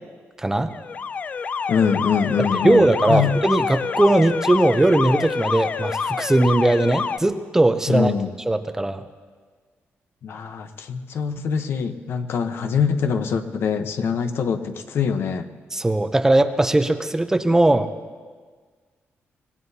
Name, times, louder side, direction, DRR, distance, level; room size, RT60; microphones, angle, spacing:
voice 1, 0.4-0.7 2.6-8.1 8.5-9.0 15.7-17.9, right 2 dB, 10° right, 9 dB, 0.6 m, -19 dB
Alarm, 0.7-7.2, left 5 dB, 35° left, 0.4 m, -27 dB
voice 2, 1.7-3.3 7.9-8.3 10.2-15.5, left 6 dB, 65° left, 8 dB, 0.9 m, -24 dB
25.0 x 19.0 x 2.8 m, 1.5 s
wide cardioid pair, 150°, 4 cm